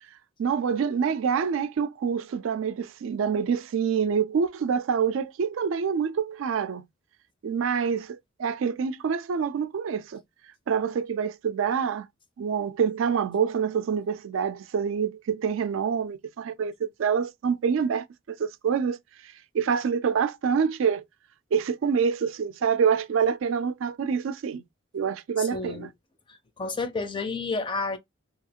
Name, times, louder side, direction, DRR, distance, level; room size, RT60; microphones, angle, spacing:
voice 1, 0.4-6.8 7.4-10.2 10.7-12.1 12.4-19.0 19.5-21.0 21.5-24.6 24.9-25.9, right 6 dB, 75° right, 0.3 m, -26 dB
voice 2, 25.4-25.9 26.3-28.0, left 3 dB, 25° left, 0.4 m, -31 dB
2.8 x 2.4 x 2.8 m
head